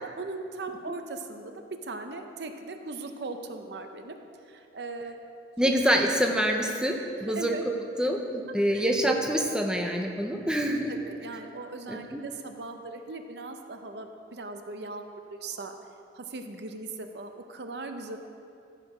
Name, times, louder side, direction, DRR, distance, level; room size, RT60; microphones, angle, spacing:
voice 1, 0.0-4.2 4.4-5.2 5.6-5.7 7.3-7.6 8.7-8.9 10.9-15.0 15.3-15.7 16.1-18.2, right 3 dB, 65° right, 6 dB, 0.7 m, -39 dB
voice 2, 5.6-7.5 8.0-10.9 11.9-12.2, equal, 5° right, 2 dB, 0.7 m, -26 dB
14.5 x 6.7 x 5.0 m, 2.5 s
head